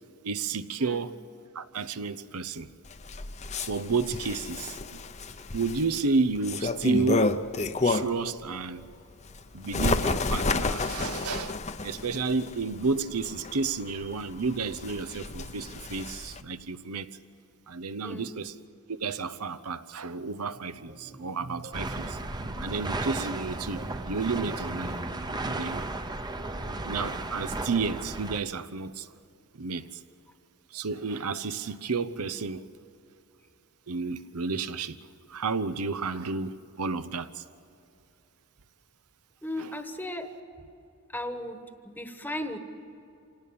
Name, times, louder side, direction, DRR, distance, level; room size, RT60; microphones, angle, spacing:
voice 1, 0.2-1.2 1.5-2.7 3.6-5.0 5.5-7.4 7.8-8.8 9.5-17.1 17.7-18.6 18.9-22.2 22.6-25.0 25.3-25.8 26.8-29.1 29.5-30.0 30.7-32.7 33.9-35.0 35.3-37.4 39.6-39.7, right 4 dB, 85° right, 13 dB, 0.9 m, -31 dB
Bird, 2.9-8.3 8.7-16.4, left 3 dB, 30° left, 0.7 m, -31 dB
voice 2, 18.0-18.4 39.4-40.3 41.1-42.6, left 1 dB, 10° left, 7 dB, 1.3 m, -36 dB
sound 1, 20.4-27.4, right 1 dB, 50° right, 2.3 m, -47 dB
sound 2, 21.7-28.4, right 2 dB, 20° right, 0.8 m, -34 dB
26.5 x 18.0 x 8.6 m, 2.7 s
head